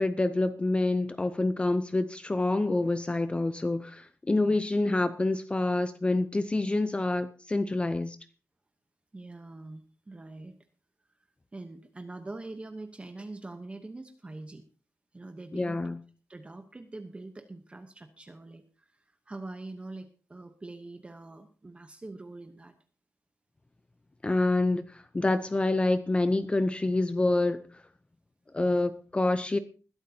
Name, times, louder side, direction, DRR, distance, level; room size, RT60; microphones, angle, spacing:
voice 1, 0.0-8.2 15.5-16.0 24.2-27.8 28.5-29.6, left 2 dB, 20° left, 0.6 m, -27 dB
voice 2, 4.3-4.6 9.1-10.6 11.5-14.6 15.1-15.8 16.3-22.7, right 2 dB, 20° right, 0.9 m, -44 dB
21.0 x 12.0 x 2.8 m
wide cardioid pair, 180°, 6 cm